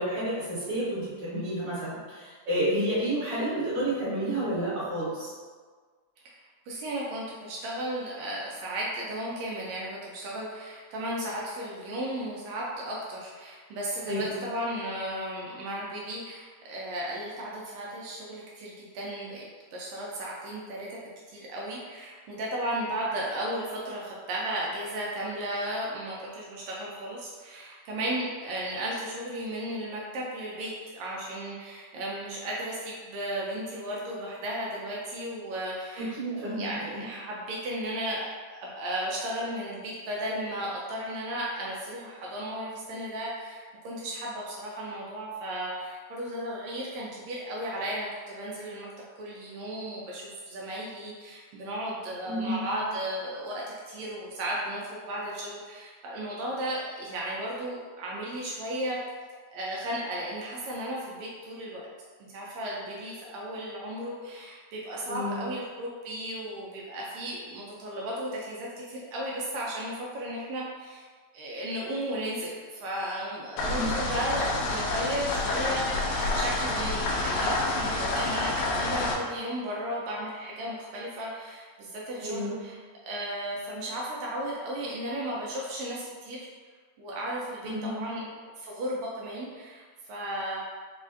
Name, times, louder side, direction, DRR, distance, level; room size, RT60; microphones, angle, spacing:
voice 1, 0.0-5.3 14.1-14.3 36.0-37.0 52.3-52.6 65.1-65.4 73.6-73.9 82.2-82.5 87.6-88.0, right 1 dB, 50° right, -12 dB, 2.0 m, -30 dB
voice 2, 6.2-19.5 19.7-21.0 21.3-48.9 49.2-59.0 59.5-61.9 62.3-71.1 71.3-75.9 76.3-86.4 87.0-90.6, right 1 dB, 80° right, -4 dB, 1.6 m, -35 dB
sound 1, 73.6-79.1, left 2 dB, 80° left, 1.9 m, -28 dB
4.8 x 2.4 x 2.5 m, 1.6 s
omnidirectional pair, 3.5 m